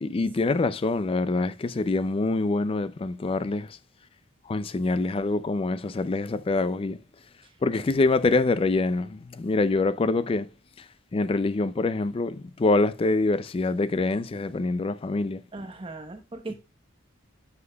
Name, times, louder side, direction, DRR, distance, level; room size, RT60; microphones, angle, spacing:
voice 1, 0.0-3.7 4.5-7.0 7.6-10.5 11.1-15.4, left 3 dB, 30° left, 0.3 m, -25 dB
voice 2, 15.5-16.6, right 2 dB, 25° right, 0.9 m, -38 dB
9.5 x 5.7 x 2.2 m
head